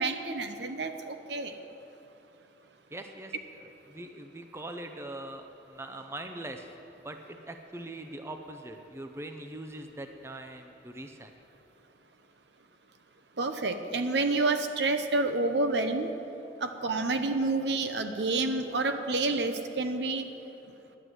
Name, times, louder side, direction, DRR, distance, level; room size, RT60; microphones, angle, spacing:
voice 1, 0.0-1.5 13.4-16.1 16.6-20.2, right 3 dB, 70° right, 7 dB, 0.9 m, -29 dB
voice 2, 2.9-3.3 3.6-6.7 7.0-11.3, right 1 dB, 15° right, 5 dB, 0.5 m, -42 dB
11.0 x 9.7 x 7.7 m, 2.8 s
head